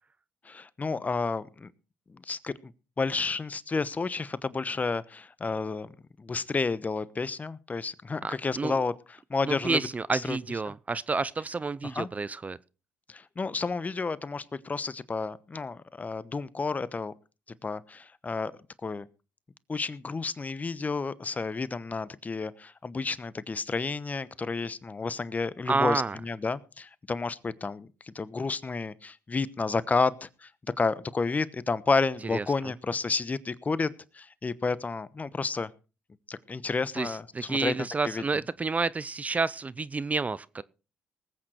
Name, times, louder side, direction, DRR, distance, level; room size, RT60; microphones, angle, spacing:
voice 1, 0.4-1.7 2.1-2.7 3.0-5.9 6.2-8.9 9.3-10.4 10.7-10.8 11.8-12.1 13.1-17.1 17.6-18.5 18.8-19.1 19.7-27.9 28.1-30.5 30.8-35.7 36.3-38.2, left 4 dB, 30° left, 1.1 m, -31 dB
voice 2, 8.2-8.7 9.5-12.6 25.7-26.2 32.3-32.4 36.9-40.6, right 4 dB, 30° right, 0.6 m, -29 dB
19.5 x 8.8 x 4.4 m
supercardioid pair, 65°, 5 cm